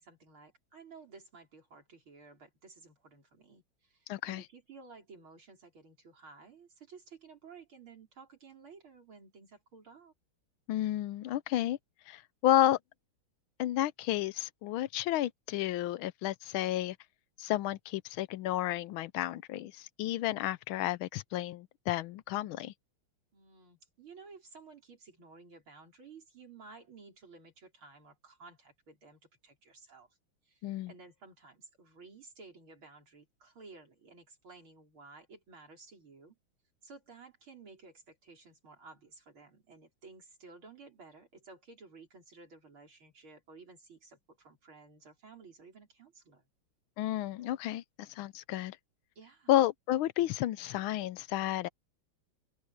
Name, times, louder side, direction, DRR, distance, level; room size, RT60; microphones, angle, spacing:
voice 1, 0.0-10.1 23.3-30.1 30.5-36.4 36.8-46.4 49.2-49.5, right 4 dB, 75° right, 5.4 m, -54 dB
voice 2, 4.1-4.4 10.7-11.8 12.1-12.8 13.6-17.0 17.4-22.7 30.6-30.9 47.0-48.8 49.5-51.7, left 13 dB, 80° left, 1.4 m, -31 dB
open air
omnidirectional pair, 2.3 m